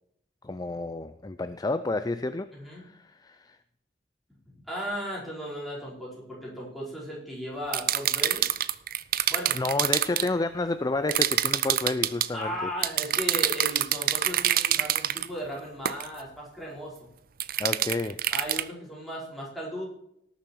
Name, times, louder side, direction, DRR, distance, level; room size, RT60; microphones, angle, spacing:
voice 1, 0.4-3.6 9.5-12.7 17.6-18.2, left 2 dB, 20° left, 11 dB, 0.4 m, -30 dB
voice 2, 2.5-2.9 4.5-8.5 9.3-9.6 12.3-17.1 18.3-19.9, equal, ahead, -6 dB, 4.7 m, -36 dB
sound 1, 7.7-10.3 11.1-12.3 12.8-15.3 15.9-16.1 17.4-18.6, right 12 dB, 55° right, 0.5 m, -26 dB
18.0 x 7.1 x 4.6 m, 0.75 s
head